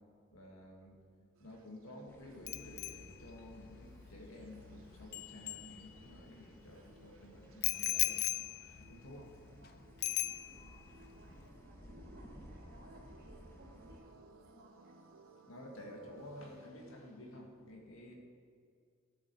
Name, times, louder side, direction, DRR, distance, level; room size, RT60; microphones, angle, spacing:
voice 1, 0.3-1.0 1.4-8.2 8.8-9.3 15.5-18.1, left 1 dB, 75° left, 0 dB, 1.8 m, -52 dB
sound 1, 1.3-16.7, right 3 dB, 80° right, 0.9 m, -63 dB
sound 2, 2.1-14.0, equal, 10° left, 1.0 m, -58 dB
Bicycle bell, 2.5-6.3 7.6-9.7 10.0-10.9 11.2-11.4, left 16 dB, 50° left, 0.3 m, -39 dB
voice 2, 10.1-15.0, right 1 dB, 50° right, -3 dB, 2.1 m, -62 dB
12.5 x 7.5 x 4.6 m, 2.2 s
head